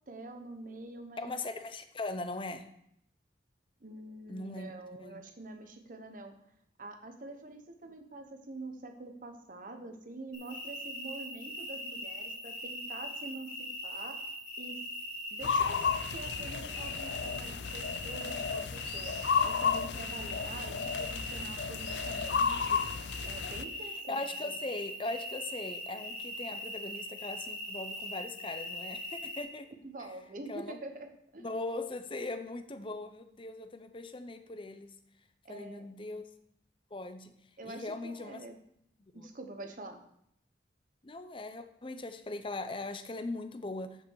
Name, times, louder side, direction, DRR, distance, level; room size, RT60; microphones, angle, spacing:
voice 1, 0.1-1.3 3.8-6.3 6.8-13.5 13.8-14.2 14.6-14.8 15.3-15.9 16.1-19.2 19.4-22.8 23.2-24.6 29.8-31.1 31.3-31.4 35.4-35.9 37.6-38.6 39.1-40.0, right 2 dB, 50° right, 6 dB, 1.1 m, -46 dB
voice 2, 1.2-2.7 4.3-5.2 24.1-29.7 30.5-30.8 31.4-34.9 35.5-36.2 36.9-37.4 37.6-38.4 39.0-39.3 41.0-44.0, left 2 dB, 30° left, 9 dB, 0.7 m, -40 dB
sound 1, 10.3-29.4, equal, 45° left, 4.3 m, -41 dB
sound 2, 15.4-23.6, left 6 dB, 75° left, 0.5 m, -33 dB
13.5 x 5.2 x 4.7 m, 0.74 s
head